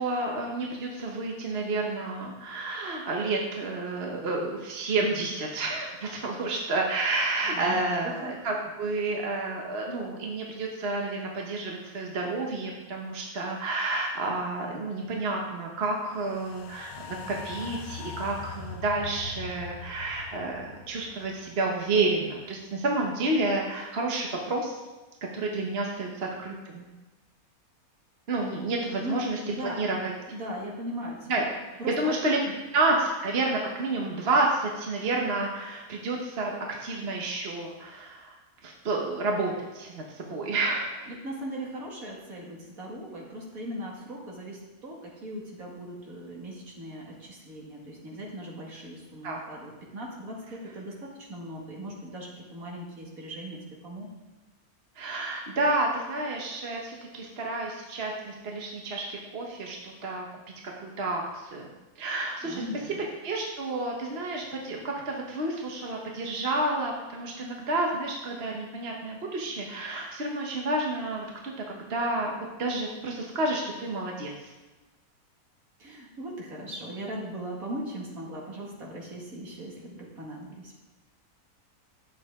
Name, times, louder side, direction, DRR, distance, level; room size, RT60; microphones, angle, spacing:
voice 1, 0.0-24.8 25.3-26.9 28.3-29.4 29.8-30.1 31.3-31.4 31.9-32.4 32.7-38.3 38.6-41.1 49.2-49.4 55.0-60.3 60.8-61.7 62.0-62.6 63.2-74.5, right 2 dB, 45° right, 0 dB, 1.3 m, -30 dB
voice 2, 7.4-8.4 29.0-29.9 30.3-31.5 31.8-32.2 41.1-54.1 62.4-63.0 75.8-80.8, right 1 dB, 65° right, -2 dB, 2.4 m, -39 dB
sound 1, 16.1-22.5 22.8-22.9, left 6 dB, 70° left, 1.1 m, -42 dB
11.5 x 7.4 x 3.7 m, 1.2 s
omnidirectional pair, 1.6 m